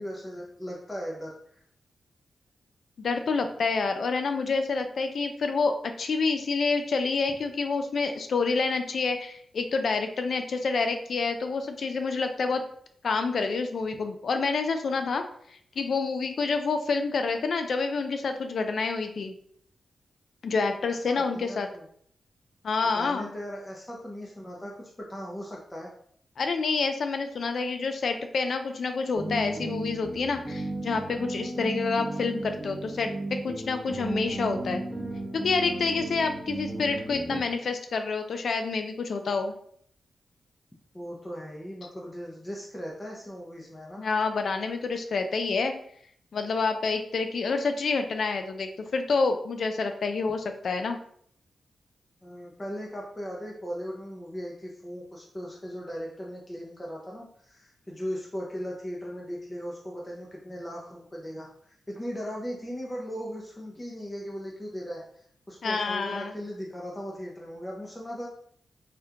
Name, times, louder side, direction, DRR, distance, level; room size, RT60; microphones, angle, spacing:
voice 1, 0.0-1.6 21.1-21.8 22.8-25.9 40.9-44.0 52.2-68.3, equal, 15° left, -3 dB, 0.6 m, -38 dB
voice 2, 3.0-12.6 13.0-15.2 15.5-19.3 20.4-21.7 22.6-23.3 26.4-33.1 33.4-34.8 35.3-39.5 44.0-45.7 46.3-51.0 65.6-66.3, left 4 dB, 65° left, 7 dB, 0.3 m, -28 dB
sound 1, 29.1-37.4, right 1 dB, 10° right, 0.8 m, -35 dB
3.4 x 2.3 x 2.8 m, 0.64 s
cardioid pair, 85°, 0 cm